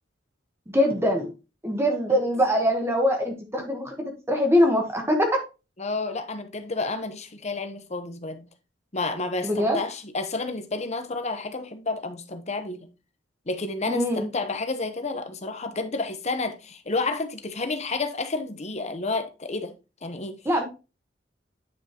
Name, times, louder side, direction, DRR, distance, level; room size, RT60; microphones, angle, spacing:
voice 1, 0.7-1.3 1.6-5.3 9.4-9.8 13.9-14.2 20.4-20.6, equal, 15° right, 1.3 m, -23 dB
voice 2, 5.8-8.5 8.9-12.9 13.5-19.7 20.0-20.4, left 3 dB, 35° left, 1.0 m, -30 dB
9.3 x 5.4 x 3.0 m
head